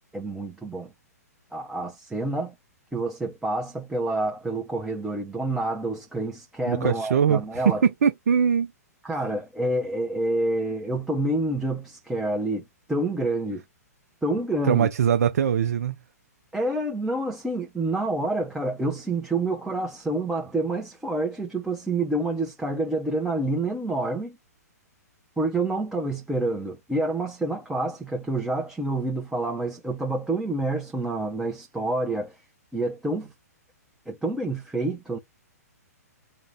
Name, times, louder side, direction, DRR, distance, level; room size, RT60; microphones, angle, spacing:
voice 1, 0.1-0.9 1.5-2.5 2.9-7.8 9.0-13.6 14.2-14.9 16.5-24.4 25.4-32.4 32.7-33.3 34.1-35.2, right 2 dB, 5° right, 0.6 m, -28 dB
voice 2, 6.6-8.7 14.7-16.0, right 7 dB, 65° right, 0.4 m, -22 dB
3.8 x 2.1 x 3.5 m
hypercardioid pair, 120°, 9 cm